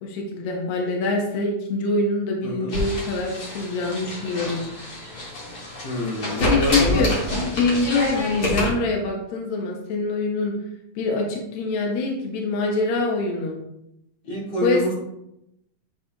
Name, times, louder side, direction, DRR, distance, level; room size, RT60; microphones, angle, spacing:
voice 1, 0.0-4.6 5.9-6.1 6.4-7.1 7.6-10.6 11.0-13.6 14.6-14.8, left 3 dB, 75° left, 0 dB, 2.3 m, -24 dB
voice 2, 2.4-2.7 5.8-7.1 14.2-14.9, equal, 55° left, -5 dB, 3.3 m, -26 dB
sound 1, 2.7-8.7, left 1 dB, 35° left, 1.9 m, -27 dB
9.5 x 4.2 x 2.8 m, 0.83 s
omnidirectional pair, 3.4 m